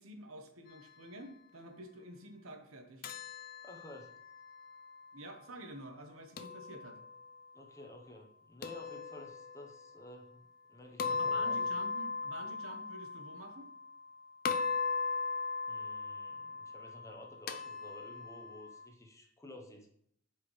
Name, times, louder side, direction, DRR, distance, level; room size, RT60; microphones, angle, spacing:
voice 1, 0.0-3.1 5.1-7.0 11.1-13.7, right 2 dB, 75° right, 5 dB, 1.0 m, -49 dB
sound 1, 3.0-5.1 6.4-7.4 8.6-9.8 11.0-14.1 14.4-18.9, left 4 dB, 45° left, 0.4 m, -38 dB
voice 2, 3.6-4.1 7.5-10.4 10.7-11.7 15.7-19.9, left 1 dB, 15° left, 2 dB, 0.8 m, -52 dB
9.0 x 4.9 x 3.2 m, 0.70 s
head